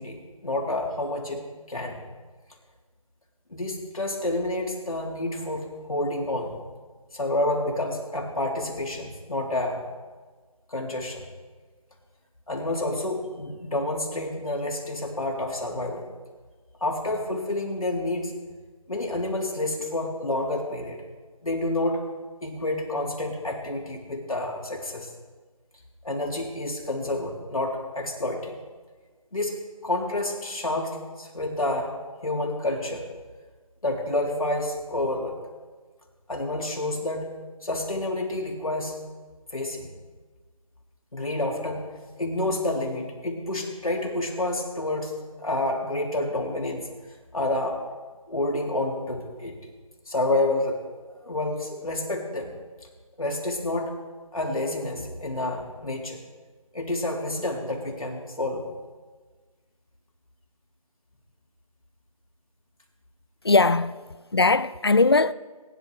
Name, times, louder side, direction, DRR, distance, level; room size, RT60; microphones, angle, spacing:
voice 1, 0.0-1.4 1.7-2.0 3.5-6.6 7.1-9.8 10.7-11.2 12.5-16.0 16.8-18.3 18.9-21.0 21.4-22.0 22.4-25.1 26.0-28.5 29.3-29.6 29.8-31.9 32.2-33.0 33.8-35.3 36.3-37.3 37.6-39.0 39.5-39.9 41.1-41.9 42.2-45.1 45.4-46.9 47.3-47.8 48.3-49.6 50.1-50.8 51.2-52.6 53.2-53.9 54.3-56.2 56.7-58.7, left 1 dB, 70° left, 3.4 m, -29 dB
voice 2, 63.4-64.0 64.3-65.3, left 3 dB, 45° left, 0.4 m, -19 dB
21.0 x 11.0 x 3.3 m
figure-of-eight pair, 170°, 19 cm